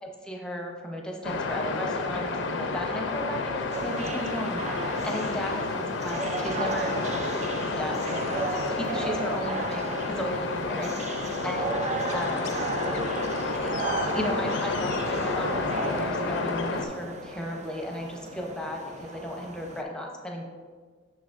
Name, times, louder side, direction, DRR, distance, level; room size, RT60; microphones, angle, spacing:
voice 1, 0.0-8.3 8.7-12.5 13.4-20.4, equal, 5° left, 0 dB, 0.7 m, -35 dB
sound 1, 1.2-16.9, left 3 dB, 80° left, 0.5 m, -30 dB
sound 2, 3.7-19.8, right 3 dB, 40° right, 0.4 m, -35 dB
6.4 x 6.0 x 2.5 m, 1.5 s
head